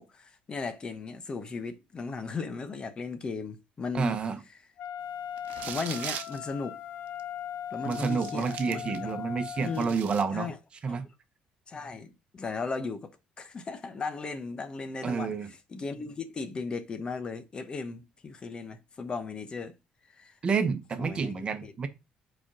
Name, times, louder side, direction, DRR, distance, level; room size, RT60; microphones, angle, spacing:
voice 1, 0.0-4.2 5.6-6.8 7.7-9.2 9.6-9.9 10.3-10.6 10.9-11.0 11.7-13.1 13.4-19.7 20.2-20.3 21.0-21.7, left 4 dB, 30° left, 0.9 m, -36 dB
voice 2, 3.9-4.4 7.8-10.5 10.8-11.1 15.0-15.5 20.4-21.9, right 5 dB, 35° right, 1.0 m, -29 dB
Wind instrument woodwind instrument, 4.8-10.0, left 9 dB, 75° left, 0.6 m, -39 dB
sound 1, 5.4-6.4 7.2-7.3 7.9-9.1 9.5-10.2, right 10 dB, 70° right, 0.9 m, -40 dB
4.9 x 4.4 x 6.1 m
cardioid pair, 110°, 3 cm